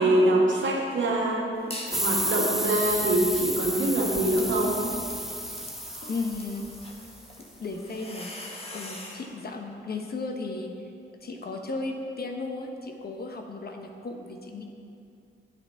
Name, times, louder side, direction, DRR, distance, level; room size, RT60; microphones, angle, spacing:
voice 1, 0.0-1.5 1.9-4.8, right 1 dB, 65° right, -1 dB, 1.8 m, -24 dB
sound 1, 1.7-2.1 2.5-9.3, left 1 dB, 30° left, 1.8 m, -44 dB
sound 2, 1.9-7.2, equal, ahead, 0.4 m, -31 dB
voice 2, 6.0-6.6 7.6-8.3 8.7-10.7 11.2-14.6, left 3 dB, 50° left, 3 dB, 1.2 m, -35 dB
9.0 x 7.6 x 5.7 m, 2.6 s
cardioid pair, 65°, 21 cm